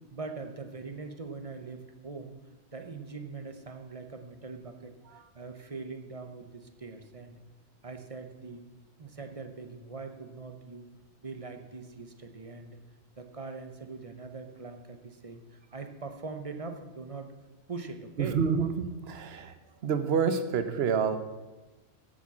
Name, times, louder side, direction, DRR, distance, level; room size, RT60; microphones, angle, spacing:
voice 1, 0.1-2.4 2.7-7.4 7.8-8.6 9.0-10.8 11.2-12.8 13.2-17.3 17.7-18.4, right 4 dB, 30° right, 7 dB, 0.9 m, -42 dB
voice 2, 18.2-19.5 19.8-21.2, right 6 dB, 60° right, 10 dB, 1.1 m, -28 dB
9.0 x 8.4 x 7.2 m, 1.1 s
omnidirectional pair, 1.2 m